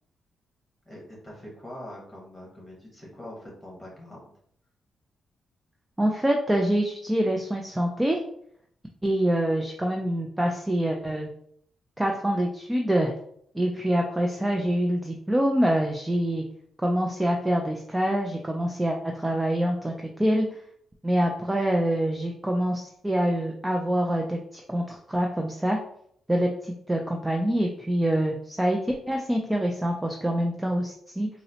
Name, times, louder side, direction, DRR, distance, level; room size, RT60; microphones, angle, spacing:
voice 1, 0.8-4.3, left 1 dB, 10° left, -3 dB, 1.2 m, -43 dB
voice 2, 6.0-8.2 9.0-11.3 12.0-13.1 13.5-16.4 16.8-20.5 21.0-25.8 26.3-31.3, right 1 dB, 10° right, 1 dB, 0.3 m, -25 dB
3.9 x 2.0 x 2.7 m, 0.67 s
cardioid pair, 125°, 0 cm